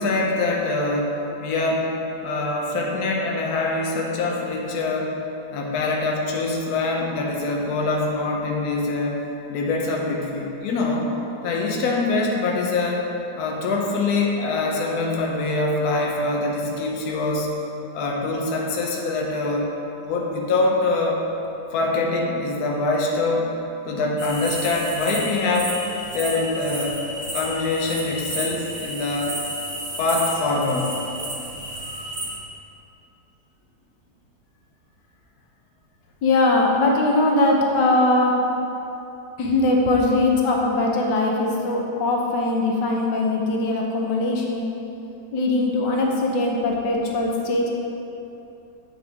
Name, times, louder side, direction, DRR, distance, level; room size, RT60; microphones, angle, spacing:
voice 1, 0.0-1.9 2.2-5.2 5.5-9.2 9.5-11.1 11.4-13.1 13.4-17.5 17.9-19.7 20.0-21.2 21.7-23.5 23.9-25.8 26.1-27.0 27.3-29.3 30.0-31.0, left 3 dB, 65° left, -1 dB, 1.3 m, -24 dB
sound 1, 24.2-32.3, right 1 dB, 45° right, 1.6 m, -32 dB
voice 2, 36.2-38.4 39.4-44.7 45.3-47.8, left 2 dB, 85° left, -1 dB, 1.4 m, -21 dB
7.8 x 6.0 x 3.5 m, 2.9 s
omnidirectional pair, 1.8 m